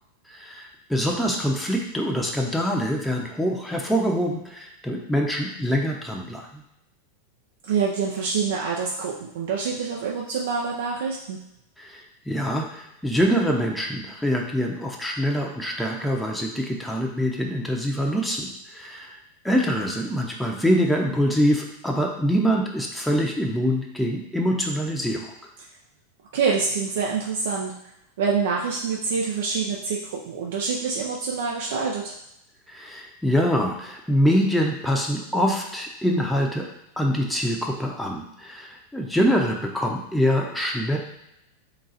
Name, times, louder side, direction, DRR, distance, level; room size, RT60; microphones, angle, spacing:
voice 1, 0.3-6.6 11.8-19.2 19.4-25.3 32.7-36.7 37.0-41.0, equal, ahead, -1 dB, 0.7 m, -24 dB
voice 2, 7.6-11.4 26.3-27.7 28.2-32.1, right 5 dB, 75° right, -2 dB, 0.5 m, -26 dB
3.9 x 2.3 x 4.1 m, 0.82 s
hypercardioid pair, 115°, 0 cm